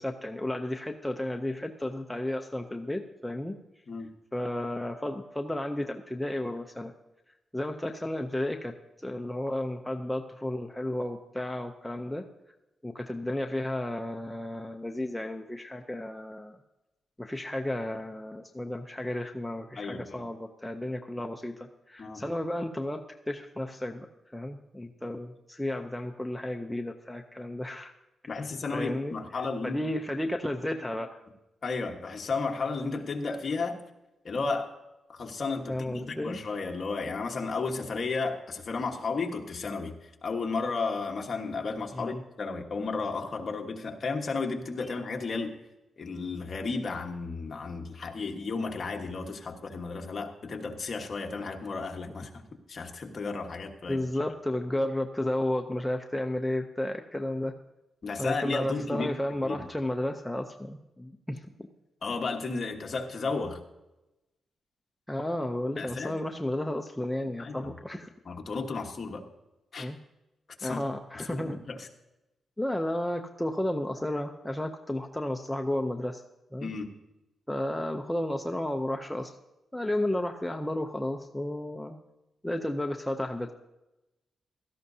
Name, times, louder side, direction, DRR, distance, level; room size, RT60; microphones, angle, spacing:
voice 1, 0.0-3.6 4.3-6.9 7.5-8.7 9.0-12.2 12.8-16.6 17.2-24.1 24.3-27.9 28.7-29.1 29.6-31.2 35.7-36.4 41.9-42.2 44.8-44.9 52.1-52.2 53.9-57.5 58.2-61.4 65.1-68.1 69.8-70.0 70.6-71.6 72.6-76.2 76.5-76.7 77.5-79.3 79.7-81.9 82.4-83.5, left 1 dB, 5° left, 3 dB, 0.5 m, -33 dB
voice 2, 19.7-20.2 22.0-22.2 28.3-29.8 31.6-33.8 34.2-34.7 35.1-45.6 46.0-52.4 52.7-54.0 58.0-59.1 59.4-59.6 62.0-63.6 65.8-66.1 67.4-67.7 68.2-69.2 69.7-69.9 70.6-71.9 76.6-76.9, left 4 dB, 40° left, 2 dB, 1.3 m, -33 dB
16.5 x 13.5 x 2.7 m, 0.96 s
wide cardioid pair, 150°, 0 cm